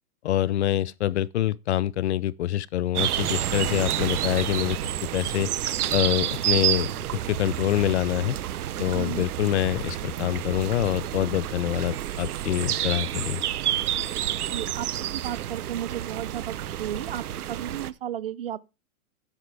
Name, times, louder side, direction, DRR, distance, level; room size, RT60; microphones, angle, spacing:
voice 1, 0.2-4.8 5.1-8.4 8.8-13.4, left 13 dB, 50° left, 0.5 m, -26 dB
sound 1, 3.0-17.9, right 11 dB, 90° right, 0.9 m, -29 dB
voice 2, 8.9-9.3 14.4-17.2 17.5-18.6, right 11 dB, 45° right, 0.5 m, -34 dB
9.9 x 9.7 x 3.4 m
hypercardioid pair, 165°, 43 cm